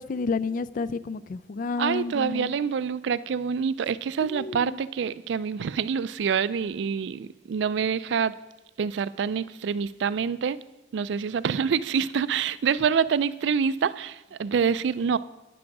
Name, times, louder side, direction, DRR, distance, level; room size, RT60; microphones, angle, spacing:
voice 1, 0.0-2.5 4.2-4.8, left 4 dB, 45° left, 0.3 m, -30 dB
voice 2, 1.8-8.3 8.8-10.6 10.9-15.2, right 6 dB, 65° right, 0.3 m, -26 dB
9.7 x 6.1 x 5.9 m
head